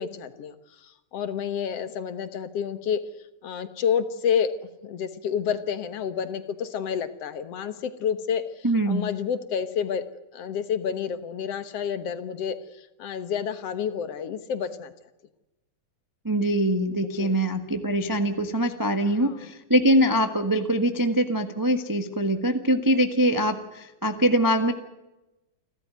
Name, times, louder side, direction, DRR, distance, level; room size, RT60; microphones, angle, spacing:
voice 1, 0.0-3.0 3.4-4.5 4.8-10.0 10.3-14.9 17.1-17.4 19.2-19.5, left 7 dB, 60° left, 12 dB, 2.0 m, -29 dB
voice 2, 8.6-9.0 16.2-24.7, equal, 25° right, 7 dB, 0.4 m, -23 dB
29.0 x 13.0 x 9.2 m, 1.0 s
omnidirectional pair, 3.4 m